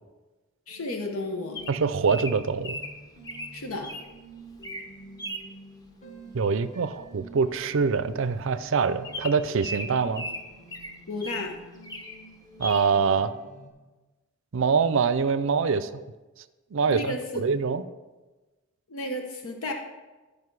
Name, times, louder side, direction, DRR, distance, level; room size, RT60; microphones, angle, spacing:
voice 1, 0.7-1.6 3.5-3.9 11.1-11.5 16.9-17.4 18.9-19.7, left 1 dB, 85° left, 3 dB, 1.0 m, -32 dB
sound 1, 0.7-13.7, right 1 dB, 35° left, 1.5 m, -49 dB
Bird vocalization bird call bird song, 1.5-4.1 4.5-4.9 5.2-5.5 7.0-7.2 7.4-7.5 7.8-8.0 8.5-8.6 9.0-11.5 11.8-12.2 12.6-12.9, left 1 dB, 20° left, 0.8 m, -37 dB
voice 2, 1.7-2.8 6.3-10.3 12.6-13.3 14.5-16.0 16.7-17.8, right 5 dB, 65° right, 12 dB, 0.5 m, -24 dB
11.5 x 5.2 x 4.7 m, 1.2 s
head